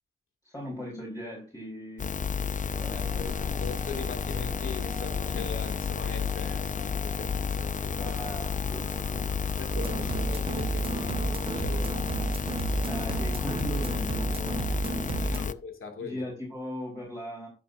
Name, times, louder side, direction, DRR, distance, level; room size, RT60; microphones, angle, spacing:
voice 1, 0.4-2.1 2.8-3.7 7.9-9.4 12.9-15.5 16.0-17.5, left 1 dB, 15° left, 4.1 m, -39 dB
sound 1, 2.0-15.5, left 6 dB, 40° left, 0.5 m, -31 dB
sound 2, 2.7-14.8, equal, ahead, 2.5 m, -47 dB
voice 2, 2.9-8.1 9.6-12.4 12.7-12.9 14.8-16.3, left 5 dB, 80° left, 2.5 m, -41 dB
sound 3, 9.7-15.4, right 5 dB, 25° right, 0.3 m, -33 dB
12.5 x 7.2 x 2.7 m
wide cardioid pair, 105°, 21 cm